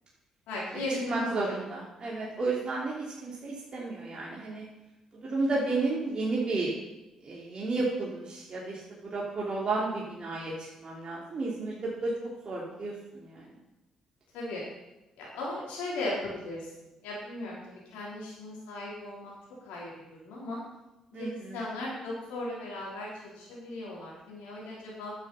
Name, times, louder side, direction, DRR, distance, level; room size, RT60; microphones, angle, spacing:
voice 1, 0.5-1.5 14.3-14.6 15.2-16.7 17.0-17.6 17.9-19.3 19.6-19.9 20.2-20.6 21.1-25.1, left 2 dB, 75° left, -5 dB, 3.8 m, -37 dB
voice 2, 1.1-4.6 5.2-6.7 7.2-10.5 10.8-12.1 12.4-13.6 21.1-21.7, right 3 dB, 45° right, -4 dB, 3.0 m, -32 dB
10.0 x 7.7 x 5.6 m, 0.97 s
hypercardioid pair, 45°, 2 cm